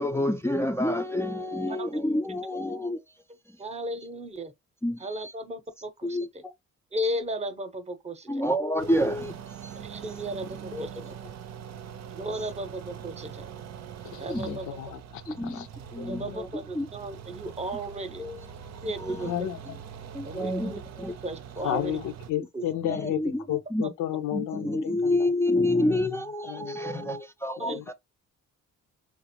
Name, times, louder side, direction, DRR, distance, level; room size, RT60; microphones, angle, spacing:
voice 1, 0.0-3.0 4.8-5.3 6.0-6.5 8.3-9.3 9.6-9.7 10.7-11.0 14.3-14.6 15.4-15.7 15.9-16.9 18.2-18.7 19.0-19.3 20.1-21.2 22.9-23.4 23.7-23.8 24.3-27.9, left 1 dB, 10° left, 0.4 m, -28 dB
voice 2, 3.6-4.5 5.0-6.4 6.9-8.4 9.7-11.1 12.1-13.5 14.2-14.8 16.0-18.2 18.8-19.5 20.2-20.8 21.2-22.0 22.5-22.7 27.6-27.8, right 1 dB, 20° right, 0.8 m, -35 dB
sound 1, 8.8-22.3, right 8 dB, 60° right, 0.6 m, -43 dB
voice 3, 14.0-15.7 16.0-16.4 19.2-19.8 21.6-27.2 27.7-27.9, left 12 dB, 85° left, 0.7 m, -34 dB
4.0 x 2.0 x 2.9 m
cardioid pair, 90°, 30 cm